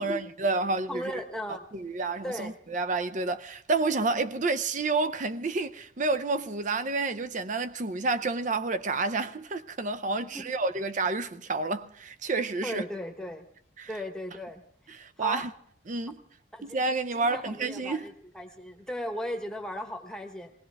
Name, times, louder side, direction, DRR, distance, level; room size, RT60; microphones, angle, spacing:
voice 1, 0.0-1.2 1.7-12.8 13.8-13.9 14.9-15.5 15.9-16.2 16.6-18.0, right 3 dB, 40° right, 0.6 m, -29 dB
voice 2, 0.9-1.6 2.2-2.5 10.3-10.5 12.6-13.4 13.9-14.6 15.2-15.4 16.5-16.8 17.1-20.5, equal, 5° left, 1.1 m, -36 dB
19.0 x 18.0 x 3.5 m
head